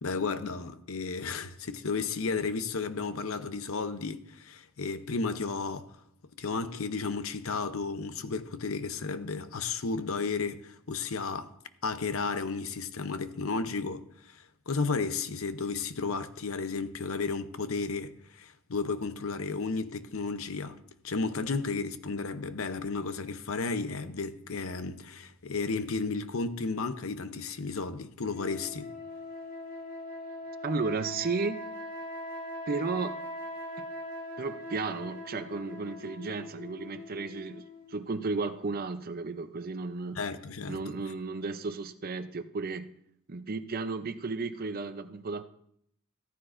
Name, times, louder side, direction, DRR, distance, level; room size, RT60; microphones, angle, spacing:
voice 1, 0.0-5.9 6.4-11.5 11.8-20.8 21.0-28.9 40.2-40.8, left 4 dB, 65° left, 0.7 m, -33 dB
sound 1, 28.3-38.0, left 1 dB, 45° left, 3.8 m, -41 dB
voice 2, 30.6-31.7 32.7-33.3 33.8-33.9 34.4-40.2 40.7-42.9 43.3-45.4, right 4 dB, 45° right, 0.6 m, -34 dB
14.5 x 14.0 x 2.6 m
head